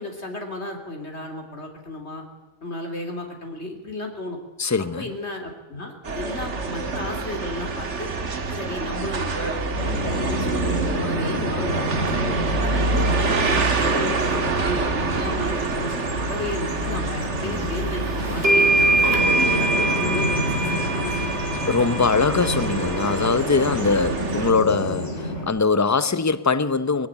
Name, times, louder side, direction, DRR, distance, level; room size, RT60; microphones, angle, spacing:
voice 1, 0.0-2.2 2.6-4.4 5.0-8.1 8.5-12.2 12.6-18.7 19.3-21.4, left 2 dB, 65° left, 3.4 m, -33 dB
voice 2, 4.6-5.1 17.4-17.7 21.7-27.1, left 4 dB, 15° left, 0.7 m, -22 dB
sound 1, 6.0-24.5, right 4 dB, 75° right, 1.9 m, -27 dB
Bird vocalization bird call bird song, 9.7-25.5, left 1 dB, 85° left, 5.1 m, -29 dB
sound 2, 17.8-17.9 18.4-23.3, right 2 dB, 55° right, 3.5 m, -23 dB
22.0 x 15.5 x 10.0 m
omnidirectional pair, 1.2 m